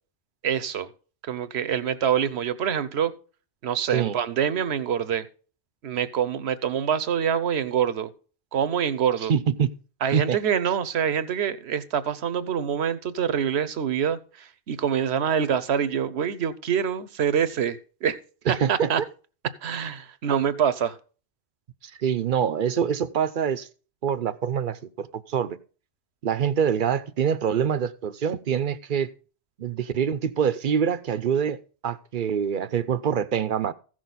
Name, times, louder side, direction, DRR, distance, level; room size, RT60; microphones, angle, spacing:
voice 1, 0.4-0.9 1.2-3.1 3.6-5.3 5.8-8.1 8.5-9.3 10.0-18.2 18.7-19.0 19.6-21.0, right 8 dB, 80° right, 1.1 m, -25 dB
voice 2, 9.3-9.7 10.1-10.4 18.5-18.9 21.8-23.7 24.0-25.6 26.2-29.1 29.6-33.7, right 8 dB, 55° right, 0.7 m, -25 dB
15.0 x 6.3 x 4.0 m
omnidirectional pair, 1.1 m